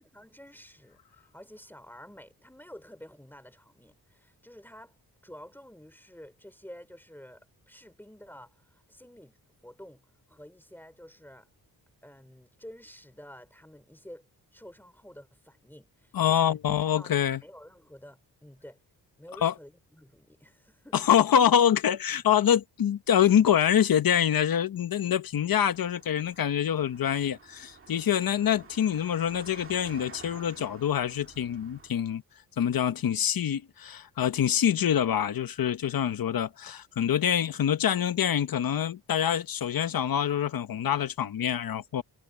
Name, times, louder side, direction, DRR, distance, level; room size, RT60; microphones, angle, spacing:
voice 1, 0.0-5.0 5.2-11.5 12.0-16.6 16.9-18.8 19.2-21.0, equal, 5° left, 3.2 m, -50 dB
voice 2, 16.1-17.4 19.4-19.5 20.9-32.2 32.6-42.0, left 9 dB, 65° left, 1.1 m, -25 dB
sound 1, 25.6-31.9, right 5 dB, 35° right, 1.9 m, -51 dB
wide cardioid pair, 160°, 38 cm